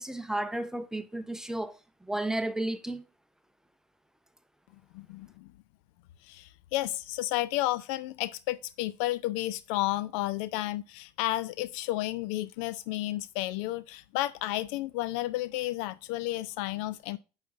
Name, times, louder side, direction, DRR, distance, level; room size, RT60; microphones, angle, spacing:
voice 1, 0.0-3.0, right 1 dB, 5° right, 0.7 m, -33 dB
voice 2, 4.9-5.5 6.2-17.2, left 16 dB, 55° left, 0.4 m, -32 dB
9.2 x 5.6 x 2.5 m
figure-of-eight pair, 65°, 20 cm